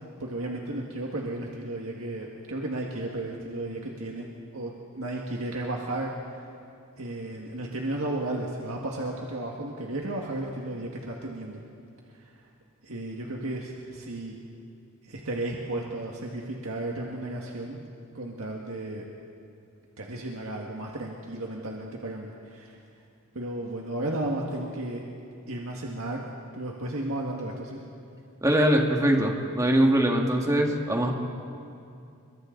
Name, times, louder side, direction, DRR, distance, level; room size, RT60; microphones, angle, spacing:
voice 1, 0.2-4.3 4.5-6.1 7.0-11.6 12.8-14.3 15.1-17.8 18.1-19.0 20.0-22.7 23.3-25.0 25.5-26.2 26.5-27.8, right 1 dB, 70° right, -1 dB, 1.8 m, -33 dB
voice 2, 28.4-31.1, right 1 dB, 15° right, 1 dB, 1.9 m, -22 dB
29.0 x 23.5 x 4.0 m, 2.5 s
head